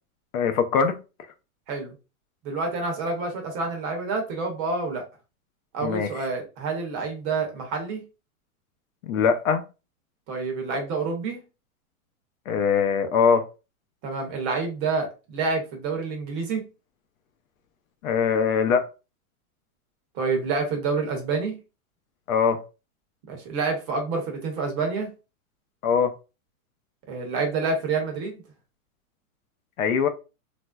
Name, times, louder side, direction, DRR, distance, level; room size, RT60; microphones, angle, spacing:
voice 1, 0.3-0.9 5.8-6.1 9.0-9.6 12.5-13.4 18.0-18.9 22.3-22.6 25.8-26.1 29.8-30.1, left 6 dB, 65° left, 0.7 m, -22 dB
voice 2, 2.4-5.0 5.7-8.0 10.3-11.4 14.0-16.6 20.1-21.5 23.3-25.1 27.1-28.4, right 4 dB, 30° right, 0.7 m, -28 dB
3.1 x 2.5 x 2.2 m
hypercardioid pair, 145°, 44 cm